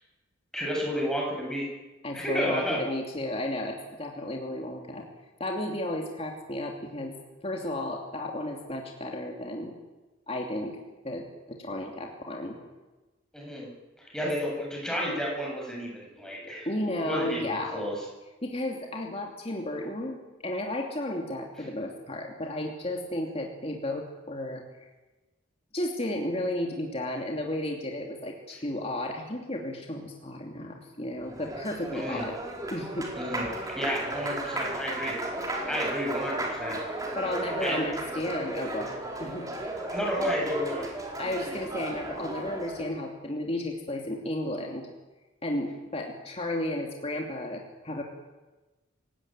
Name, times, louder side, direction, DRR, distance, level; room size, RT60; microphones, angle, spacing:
voice 1, 0.5-1.7 2.1-2.8 13.3-13.7 14.1-16.7 17.0-17.9 31.9-32.2 33.1-36.8 37.4-37.8 39.9-40.9, equal, 5° left, -2 dB, 7.9 m, -31 dB
voice 2, 2.0-5.1 5.4-7.1 7.4-9.7 10.3-10.8 11.0-12.6 14.2-14.3 16.6-17.8 18.4-24.9 25.7-32.3 32.7-33.1 37.1-39.5 41.2-44.9 45.4-48.0, left 1 dB, 30° left, 0 dB, 2.8 m, -33 dB
Applause, 31.1-42.9, right 1 dB, 20° right, 4.4 m, -35 dB
29.0 x 17.5 x 9.0 m, 1.2 s
head